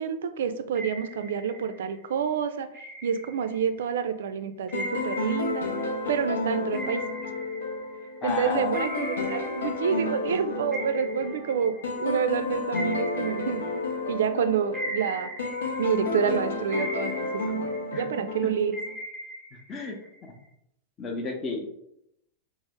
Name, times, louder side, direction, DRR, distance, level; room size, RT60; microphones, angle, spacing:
voice 1, 0.0-5.6 6.1-7.0 8.2-13.6 14.1-15.3 15.8-18.7, right 7 dB, 60° right, 9 dB, 0.3 m, -28 dB
sound 1, 0.7-2.0 2.7-3.9 4.7-8.3 8.7-10.4 10.7-14.3 14.7-16.3 16.7-18.3 18.7-20.4, equal, 15° right, 0.7 m, -39 dB
sound 2, 4.7-18.9, left 3 dB, 70° left, 0.6 m, -31 dB
voice 2, 8.2-8.7 17.9-18.1 18.4-18.5 19.5-20.0 20.2-20.3 21.0-21.7, left 4 dB, 25° left, 2 dB, 0.7 m, -33 dB
4.8 x 2.0 x 3.5 m, 0.78 s
figure-of-eight pair, 90°, 0 cm